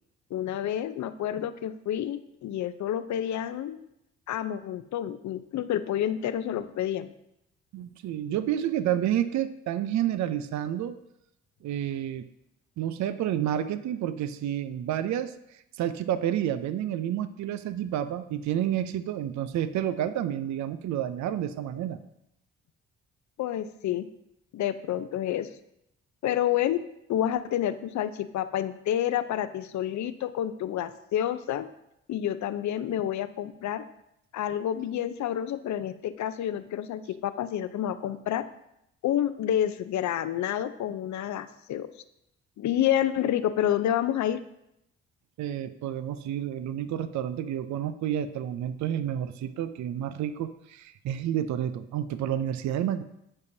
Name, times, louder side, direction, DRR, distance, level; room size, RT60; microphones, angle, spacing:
voice 1, 0.3-3.9 4.3-7.1 23.4-24.1 24.5-25.5 26.2-26.8 27.1-31.6 32.1-33.8 34.3-38.4 39.0-41.9 42.6-44.4, left 11 dB, 65° left, 12 dB, 0.6 m, -29 dB
voice 2, 7.7-11.0 11.6-12.2 12.8-22.0 45.4-53.0, right 10 dB, 60° right, 12 dB, 0.5 m, -30 dB
13.5 x 5.3 x 2.7 m, 0.80 s
supercardioid pair, 50°, 31 cm